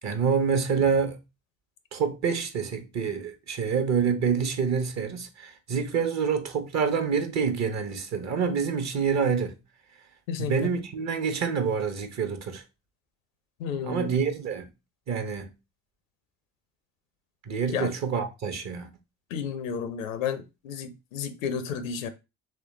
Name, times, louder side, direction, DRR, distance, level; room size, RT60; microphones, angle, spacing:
voice 1, 0.0-1.2 1.9-9.6 10.4-12.6 13.8-14.7 15.1-15.5 17.5-18.9, right 6 dB, 45° right, 0.9 m, -27 dB
voice 2, 10.3-10.7 13.6-14.2 17.7-17.9 19.3-22.1, left 7 dB, 80° left, 0.6 m, -32 dB
3.3 x 3.2 x 3.0 m
figure-of-eight pair, 45°, 39 cm